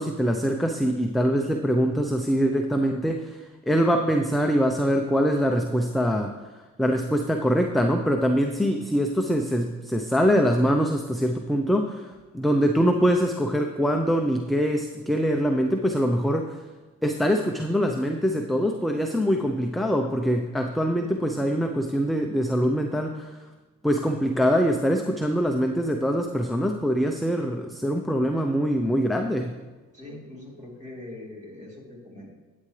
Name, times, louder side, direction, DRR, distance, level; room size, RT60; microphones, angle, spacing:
voice 1, 0.0-6.3 6.8-16.6 17.0-23.4 23.8-29.5, equal, ahead, 3 dB, 0.7 m, -24 dB
voice 2, 29.9-32.3, left 1 dB, 25° right, -3 dB, 3.3 m, -42 dB
12.0 x 8.9 x 3.3 m, 1.2 s
cardioid pair, 90°, 30 cm